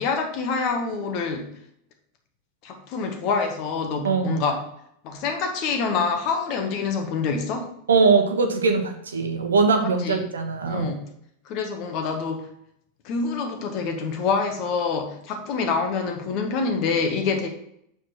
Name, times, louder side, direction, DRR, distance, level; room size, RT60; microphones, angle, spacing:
voice 1, 0.0-1.5 2.6-4.6 5.0-7.7 9.8-10.2 10.7-11.1 11.4-12.5 13.0-17.5, left 5 dB, 50° left, 4 dB, 1.5 m, -26 dB
voice 2, 4.0-4.4 7.9-10.9, right 4 dB, 80° right, 5 dB, 1.0 m, -21 dB
6.9 x 4.8 x 4.5 m, 0.71 s
figure-of-eight pair, 90°, 0 cm